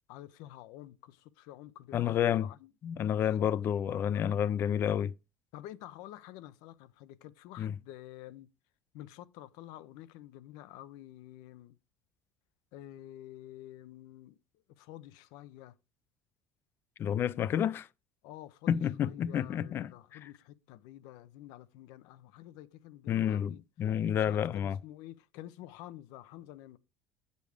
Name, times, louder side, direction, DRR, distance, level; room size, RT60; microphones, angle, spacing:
voice 1, 0.1-2.7 3.0-3.5 3.9-4.4 5.5-8.5 8.9-11.8 12.7-15.8 18.2-23.6 24.1-26.8, left 14 dB, 70° left, 0.6 m, -49 dB
voice 2, 1.9-2.5 2.8-5.1 7.6-7.7 17.0-17.9 18.7-19.9 23.1-24.8, left 9 dB, 35° left, 0.4 m, -29 dB
7.9 x 5.3 x 4.9 m
cardioid pair, 145°, 7 cm